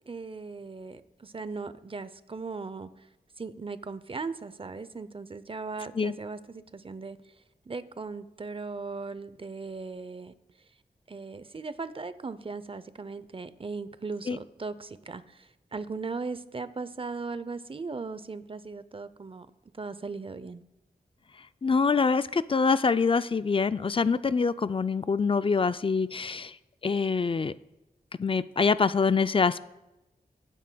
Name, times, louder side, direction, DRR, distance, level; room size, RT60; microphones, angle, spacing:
voice 1, 0.1-3.1 3.4-7.3 7.7-10.3 11.1-19.5 19.7-20.6, right 4 dB, 35° right, 14 dB, 0.6 m, -38 dB
voice 2, 21.6-26.5 26.8-27.5 28.2-29.6, left 5 dB, 35° left, 14 dB, 0.4 m, -25 dB
18.5 x 9.1 x 2.3 m, 0.96 s
wide cardioid pair, 65°, 16 cm